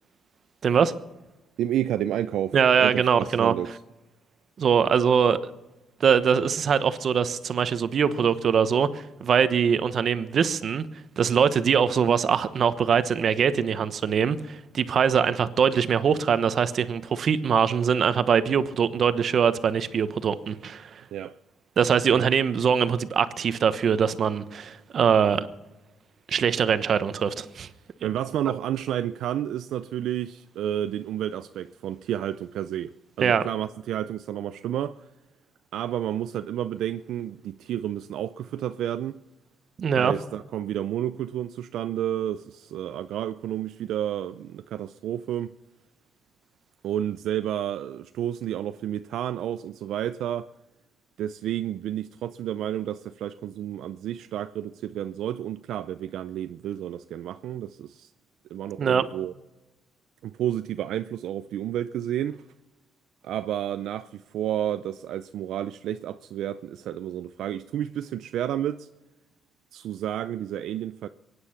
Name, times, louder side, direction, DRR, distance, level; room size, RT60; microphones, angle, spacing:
voice 1, 0.6-0.9 2.5-3.5 4.6-5.4 6.0-10.9 11.2-21.0 21.8-25.5 26.3-27.7 33.2-33.5 39.8-40.1 58.8-59.1, right 7 dB, 55° right, 1.0 m, -22 dB
voice 2, 1.6-3.7 21.1-21.4 22.1-22.2 28.0-35.1 35.7-39.2 40.0-45.6 46.8-50.5 51.2-58.1 58.5-59.3 60.2-62.4 63.2-68.9 69.7-71.1, right 11 dB, 80° right, 0.5 m, -31 dB
23.0 x 9.7 x 5.8 m
cardioid pair, 90°, 0 cm